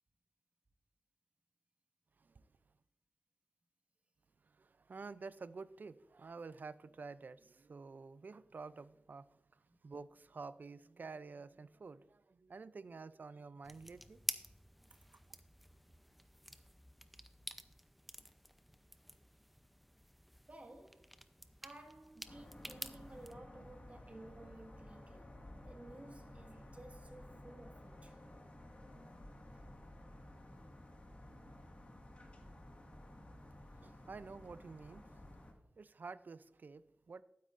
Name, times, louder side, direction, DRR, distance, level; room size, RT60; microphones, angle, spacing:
voice 1, 2.2-2.5 4.4-14.2 33.8-35.5 35.8-37.2, right 4 dB, 60° right, 0.4 m, -50 dB
sound 1, 13.6-23.3, equal, ahead, 0.6 m, -50 dB
voice 2, 20.5-21.1 21.6-25.4 25.7-28.2 29.5-29.6, right 1 dB, 40° right, 1.6 m, -55 dB
sound 2, 22.2-35.5, left 1 dB, 40° left, 1.8 m, -54 dB
12.0 x 9.5 x 2.5 m
wide cardioid pair, 75°, 3 cm